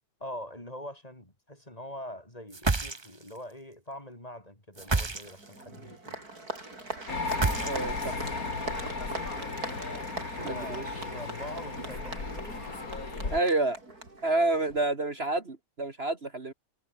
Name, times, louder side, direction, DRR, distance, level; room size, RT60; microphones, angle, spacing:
voice 1, 0.2-6.2 10.4-12.3 13.2-13.5, left 1 dB, 25° left, 6.1 m, -43 dB
sound 1, 2.5-3.4 4.8-5.6 7.3-8.1, right 3 dB, 20° right, 1.0 m, -29 dB
Applause, 4.8-14.9, right 2 dB, 80° right, 6.6 m, -42 dB
sound 2, 7.1-13.4, left 3 dB, 65° left, 3.7 m, -35 dB
voice 2, 7.6-8.2 10.4-10.8 13.3-13.8 14.2-16.5, right 2 dB, 40° right, 2.5 m, -29 dB
omnidirectional pair, 1.6 m